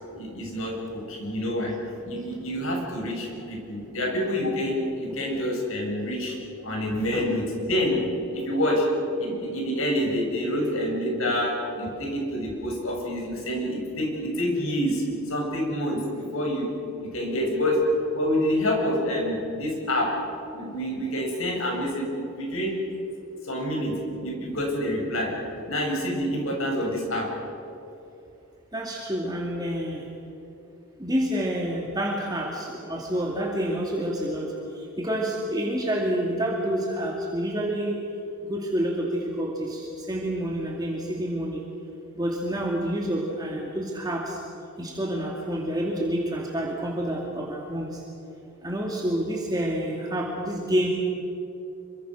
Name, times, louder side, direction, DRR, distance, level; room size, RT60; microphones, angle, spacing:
voice 1, 0.1-1.7 2.0-6.4 6.6-8.0 8.3-8.9 9.2-16.0 16.3-16.7 17.0-17.8 18.1-20.1 20.5-22.7 23.5-23.9 24.2-25.3 25.7-27.3, equal, 70° left, -1 dB, 7.7 m, -27 dB
voice 2, 28.7-30.0 31.0-34.5 35.0-38.0 38.5-41.6 42.2-44.4 44.8-47.9 48.6-50.9, right 1 dB, 20° right, -2 dB, 2.5 m, -28 dB
27.0 x 25.0 x 6.5 m, 2.9 s
head